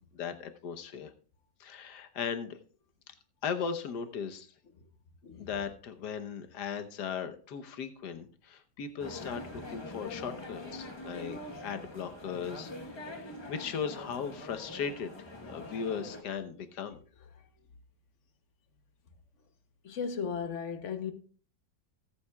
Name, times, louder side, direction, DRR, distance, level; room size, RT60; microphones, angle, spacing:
voice 1, 0.1-1.1 1.6-2.6 3.4-4.5 5.4-15.1 15.4-17.0, left 6 dB, 70° left, 1.5 m, -37 dB
sound 1, 9.0-16.2, left 2 dB, 20° left, 1.0 m, -44 dB
voice 2, 19.8-21.1, left 6 dB, 50° left, 1.1 m, -35 dB
19.0 x 8.5 x 2.3 m
omnidirectional pair, 1.9 m